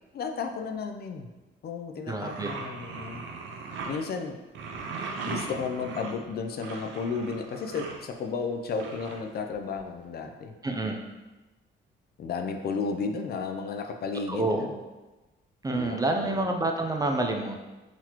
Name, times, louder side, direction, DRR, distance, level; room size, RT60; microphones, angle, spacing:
voice 1, 0.1-1.3 1.6-3.2 3.9-4.4 5.2-10.5 12.2-14.7 15.7-16.5, left 5 dB, 55° left, 5 dB, 0.4 m, -33 dB
voice 2, 2.1-2.5 10.6-11.0 14.3-14.7 15.6-17.6, right 2 dB, 20° right, 3 dB, 0.4 m, -28 dB
sound 1, 2.2-4.0 4.5-8.0 8.7-9.8, right 4 dB, 75° right, 0.6 m, -38 dB
4.0 x 2.9 x 2.9 m, 1.1 s
cardioid pair, 90°, 20 cm